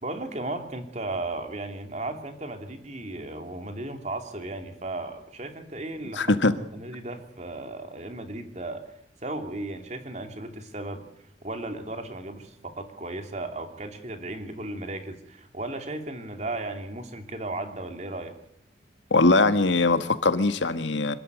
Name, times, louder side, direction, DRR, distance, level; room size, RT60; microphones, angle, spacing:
voice 1, 0.0-6.3 6.7-8.8 9.2-11.0 11.4-18.3, right 2 dB, 35° right, 2.9 m, -35 dB
voice 2, 6.1-6.5 19.1-21.1, left 2 dB, 75° left, 1.7 m, -21 dB
26.5 x 13.5 x 9.6 m
head